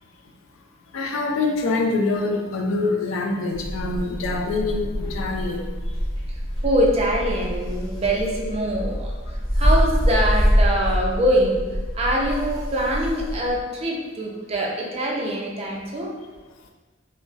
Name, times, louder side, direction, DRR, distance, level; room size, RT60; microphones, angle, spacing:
voice 1, 0.9-5.9, left 3 dB, 80° left, 1 dB, 0.4 m, -25 dB
sound 1, 3.5-13.6, equal, 20° left, 0.5 m, -25 dB
voice 2, 6.6-9.1 9.6-11.6 11.9-16.1, equal, 30° right, -1 dB, 0.4 m, -23 dB
2.3 x 2.0 x 3.8 m, 1.3 s
head